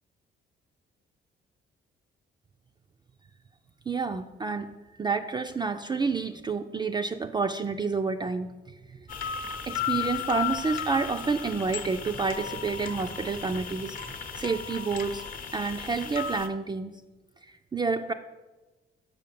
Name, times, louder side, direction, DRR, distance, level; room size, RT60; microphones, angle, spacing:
voice 1, 3.9-4.7 5.0-8.5 8.9-9.0 9.7-14.0 14.3-15.2 15.5-17.0 17.5-18.1, right 4 dB, 20° right, 6 dB, 0.3 m, -29 dB
sound 1, 9.1-16.5, left 8 dB, 45° left, 0.8 m, -35 dB
6.3 x 5.0 x 6.7 m, 1.2 s
cardioid pair, 90°, 20 cm